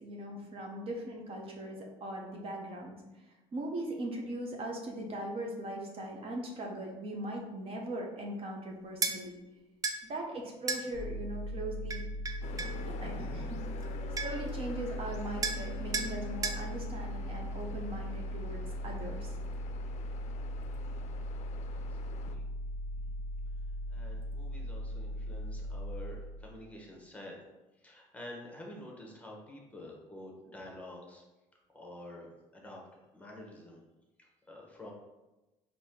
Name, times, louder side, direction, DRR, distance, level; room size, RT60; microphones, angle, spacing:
voice 1, 0.0-3.0 3.5-9.4 10.0-12.0 12.8-13.6 14.2-19.3, right 1 dB, 45° right, 0 dB, 0.8 m, -40 dB
sound 1, 9.0-9.2 9.8-10.0 10.7-10.9 11.9-12.8 13.8-13.9 14.2-14.5 15.4-15.7 15.9-16.1 16.4-16.6, right 4 dB, 30° right, 0.4 m, -33 dB
sound 2, 10.9-26.7, equal, 90° right, 1.1 m, -39 dB
sound 3, 12.4-22.4, left 6 dB, 60° left, 0.4 m, -48 dB
voice 2, 21.7-22.4 23.9-27.4 27.8-31.2 31.7-33.8 34.2-34.9, left 1 dB, 10° left, -1 dB, 1.0 m, -48 dB
4.1 x 2.9 x 3.6 m, 1.0 s
cardioid pair, 105°, 13 cm